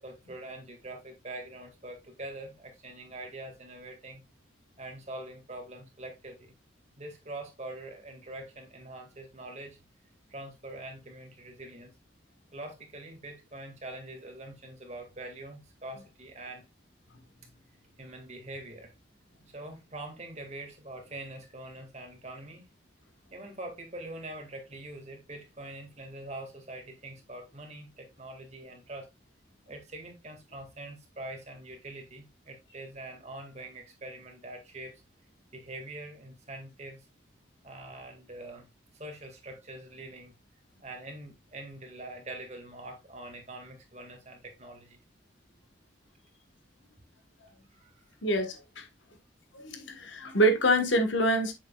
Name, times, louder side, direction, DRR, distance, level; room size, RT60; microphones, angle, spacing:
voice 1, 0.0-4.2 4.8-6.5 7.0-9.8 10.3-11.9 12.5-16.7 18.0-18.9 19.5-22.6 23.3-29.1 29.7-35.0 35.5-37.1 37.6-38.7 38.9-40.3 40.8-45.0 47.7-48.1, right 2 dB, 35° right, 1.9 m, -44 dB
voice 2, 48.2-48.9 49.5-51.5, right 1 dB, 80° left, 1.4 m, -26 dB
7.6 x 6.3 x 2.3 m
head